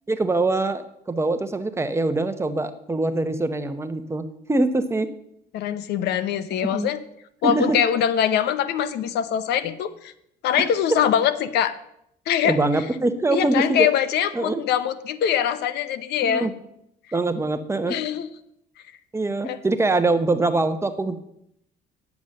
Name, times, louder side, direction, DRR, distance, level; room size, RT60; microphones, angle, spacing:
voice 1, 0.1-5.1 6.7-6.9 7.4-7.8 12.4-13.9 14.3-14.6 16.2-16.5 17.1-17.9 19.1-21.2, right 2 dB, 15° right, 9 dB, 0.9 m, -23 dB
voice 2, 5.5-7.0 7.4-10.1 10.4-11.7 12.3-12.6 13.3-16.5 17.9-18.3 19.4-19.6, left 9 dB, 75° left, 14 dB, 0.8 m, -23 dB
9.6 x 7.1 x 6.4 m, 0.75 s
cardioid pair, 110°, 17 cm